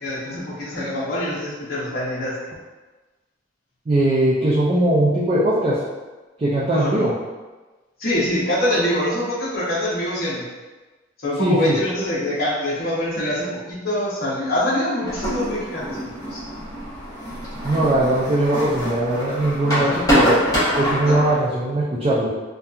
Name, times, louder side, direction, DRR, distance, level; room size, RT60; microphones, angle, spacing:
voice 1, 0.0-2.4 6.7-7.1 8.0-10.5 11.2-16.0 16.3-16.4 19.7-19.9 21.0-21.2, left 1 dB, 50° left, -8 dB, 0.8 m, -24 dB
voice 2, 3.9-5.8 6.4-7.1 11.4-11.8 17.6-20.4 20.8-22.3, right 1 dB, 30° right, -8 dB, 0.3 m, -20 dB
sound 1, 15.1-21.4, equal, 20° left, 0.9 m, -24 dB
2.7 x 2.2 x 2.3 m, 1.2 s
head